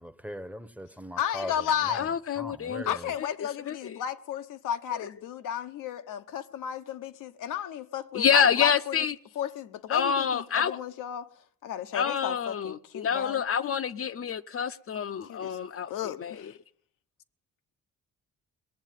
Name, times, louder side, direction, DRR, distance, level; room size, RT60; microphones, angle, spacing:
voice 1, 0.0-1.5 1.8-2.0 2.4-3.1, left 1 dB, 5° right, 0.8 m, -40 dB
voice 2, 1.2-2.1 2.9-9.0 9.4-11.3 11.6-13.4 15.3-15.6 15.9-16.6, left 9 dB, 85° left, 0.9 m, -33 dB
voice 3, 1.9-4.0 4.9-5.1 8.1-9.1 9.9-10.8 11.9-16.5, left 7 dB, 45° left, 0.6 m, -28 dB
19.5 x 7.2 x 9.1 m
cardioid pair, 80°, 31 cm